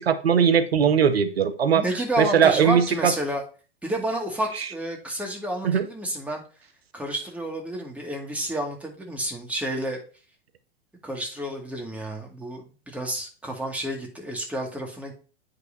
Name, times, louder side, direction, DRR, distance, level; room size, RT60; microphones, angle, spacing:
voice 1, 0.0-1.8 2.2-3.1 5.6-5.9, right 7 dB, 85° right, 12 dB, 0.7 m, -20 dB
voice 2, 1.7-3.4 3.8-6.4 6.9-10.0 11.0-15.1, right 1 dB, 5° right, 0 dB, 2.0 m, -30 dB
9.1 x 5.6 x 2.7 m, 0.37 s
hypercardioid pair, 100°, 30 cm